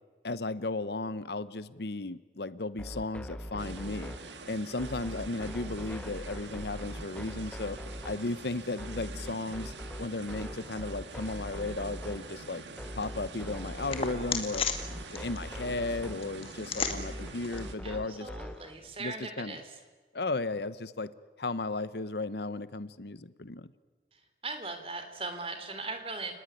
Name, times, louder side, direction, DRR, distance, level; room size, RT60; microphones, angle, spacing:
voice 1, 0.2-4.1 4.5-7.8 8.0-9.7 10.0-12.6 12.9-14.6 15.1-18.3 19.0-19.6 20.1-21.1 21.4-23.7, left 2 dB, 70° left, 15 dB, 0.9 m, -35 dB
sound 1, 2.8-18.7, equal, 5° left, 1.0 m, -42 dB
sound 2, 3.6-17.8, right 3 dB, 90° right, 2.0 m, -46 dB
sound 3, 12.1-18.9, left 5 dB, 30° left, 2.0 m, -39 dB
voice 2, 17.8-19.7 24.1-26.3, right 3 dB, 30° right, 7 dB, 3.3 m, -39 dB
30.0 x 19.5 x 9.9 m, 1.3 s
head